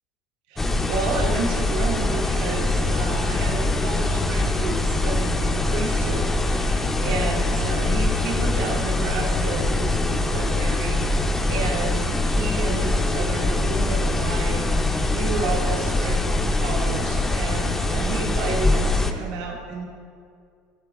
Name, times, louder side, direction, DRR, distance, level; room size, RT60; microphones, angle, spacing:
voice 1, 0.5-19.8, right 4 dB, 70° right, 1 dB, 1.0 m, -31 dB
sound 1, 0.6-19.1, left 2 dB, 10° left, 0.4 m, -23 dB
8.3 x 5.0 x 6.1 m, 2.2 s
cardioid pair, 150°, 3 cm